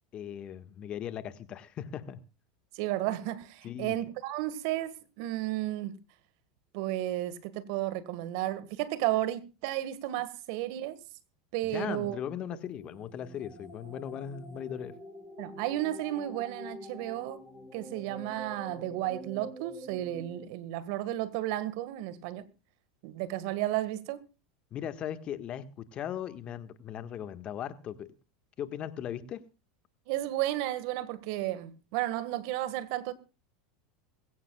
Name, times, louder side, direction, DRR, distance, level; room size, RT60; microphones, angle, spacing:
voice 1, 0.1-2.2 3.6-3.9 11.6-14.9 24.7-28.1 28.6-29.4, left 9 dB, 40° left, 1.6 m, -38 dB
voice 2, 2.7-5.9 6.7-11.0 11.5-12.2 15.4-17.4 17.7-22.5 23.0-24.2 30.1-33.1, right 14 dB, 65° right, 1.7 m, -33 dB
sound 1, 12.3-20.5, right 1 dB, 10° right, 7.8 m, -47 dB
21.0 x 16.5 x 2.4 m
hypercardioid pair, 95°, 3 cm